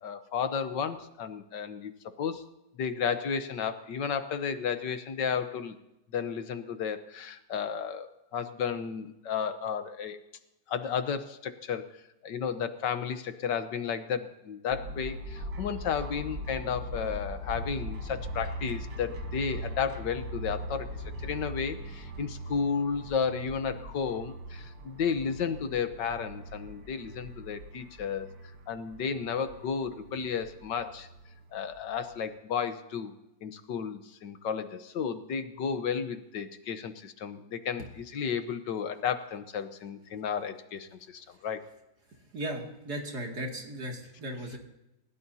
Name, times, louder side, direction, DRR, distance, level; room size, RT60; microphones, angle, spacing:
voice 1, 0.0-1.9 2.2-2.4 2.8-5.7 6.1-10.2 10.7-11.9 12.2-20.9 21.2-28.3 28.7-31.1 31.5-33.1 33.4-41.7, left 6 dB, 75° left, 9 dB, 1.7 m, -33 dB
sound 1, 14.7-32.2, right 1 dB, 85° right, 2.1 m, -41 dB
sound 2, 15.3-21.7, left 5 dB, 40° left, 1.1 m, -43 dB
voice 2, 42.3-44.6, right 1 dB, 60° right, 1 dB, 3.0 m, -36 dB
29.5 x 16.5 x 2.8 m, 0.93 s
omnidirectional pair, 1.9 m